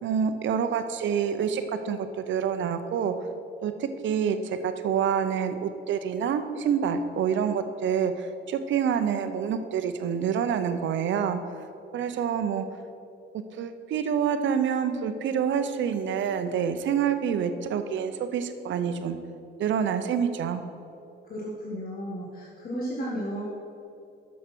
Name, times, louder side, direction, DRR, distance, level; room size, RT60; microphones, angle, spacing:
voice 1, 0.0-3.2 3.6-11.4 11.9-12.6 13.6-19.2 19.6-20.6, right 7 dB, 70° right, 9 dB, 0.7 m, -27 dB
voice 2, 21.3-23.4, equal, 50° left, -5 dB, 1.7 m, -33 dB
8.0 x 6.4 x 6.0 m, 2.8 s
cardioid pair, 90°, 20 cm